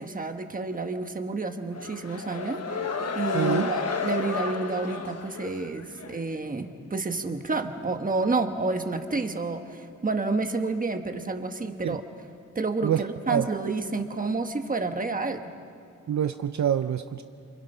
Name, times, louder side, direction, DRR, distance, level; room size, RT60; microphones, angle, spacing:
voice 1, 0.0-2.6 3.1-12.0 12.5-15.4, right 3 dB, 25° right, 6 dB, 1.3 m, -29 dB
sound 1, 1.7-6.2, left 4 dB, 55° left, 1.2 m, -32 dB
voice 2, 3.3-3.7 11.8-12.0 12.8-13.0 13.3-13.5 16.1-17.2, right 9 dB, 65° right, 9 dB, 0.6 m, -26 dB
28.5 x 25.0 x 5.6 m, 2.5 s
wide cardioid pair, 155°, 31 cm